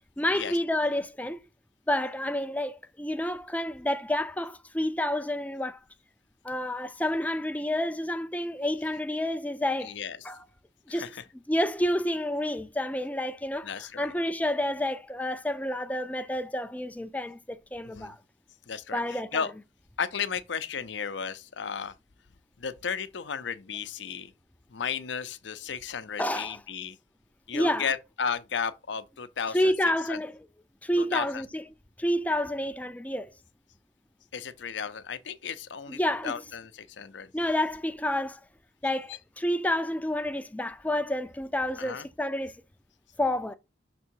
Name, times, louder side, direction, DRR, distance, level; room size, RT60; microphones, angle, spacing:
voice 1, 0.2-1.4 1.9-5.8 6.4-9.9 10.2-10.4 10.9-11.1 11.5-18.2 18.9-19.5 26.2-26.6 27.5-27.9 29.5-30.4 30.8-31.6 32.0-33.3 35.9-36.3 37.3-38.4 38.8-42.6 43.2-43.6, left 1 dB, 10° left, 0.5 m, -29 dB
voice 2, 9.8-10.2 10.9-11.2 13.6-14.1 17.9-18.1 18.7-19.5 20.0-21.9 22.6-24.3 24.7-27.0 27.5-29.7 30.1-30.2 31.0-31.4 34.3-37.3 41.8-42.1, left 6 dB, 75° left, 0.6 m, -34 dB
6.0 x 3.6 x 4.5 m
head